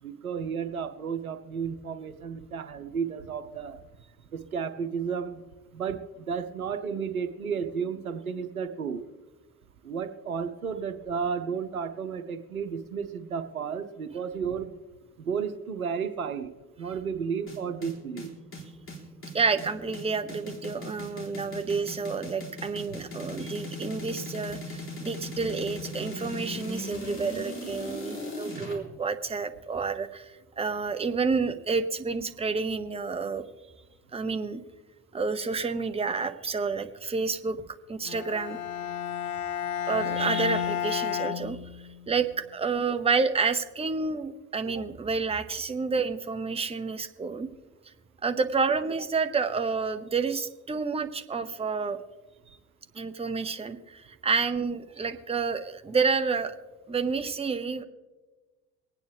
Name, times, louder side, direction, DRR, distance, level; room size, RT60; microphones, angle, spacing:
voice 1, 0.0-3.8 4.3-5.4 5.7-9.0 9.8-14.7 15.2-16.5 16.8-18.3, right 6 dB, 85° right, 9 dB, 0.7 m, -33 dB
sound 1, 17.5-28.8, left 1 dB, 30° left, 3.7 m, -38 dB
voice 2, 19.3-33.4 34.1-34.6 35.1-37.6 37.9-38.6 39.9-41.6 42.1-47.5 48.2-52.0 52.9-56.5 56.9-57.8, right 4 dB, 15° right, 9 dB, 0.8 m, -29 dB
Bowed string instrument, 38.1-42.2, left 9 dB, 80° left, 0.5 m, -32 dB
23.5 x 9.2 x 3.4 m, 1.2 s
figure-of-eight pair, 60°, 41 cm